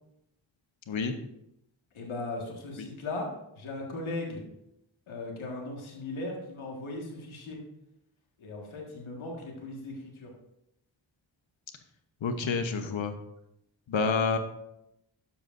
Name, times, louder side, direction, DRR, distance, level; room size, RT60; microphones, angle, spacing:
voice 1, 1.9-4.4 5.1-7.6 8.4-10.3, left 2 dB, 85° left, -1 dB, 1.8 m, -38 dB
voice 2, 12.2-13.1 13.9-14.4, left 4 dB, 70° left, 7 dB, 1.0 m, -28 dB
11.5 x 8.1 x 2.6 m, 0.83 s
cardioid pair, 40°, 47 cm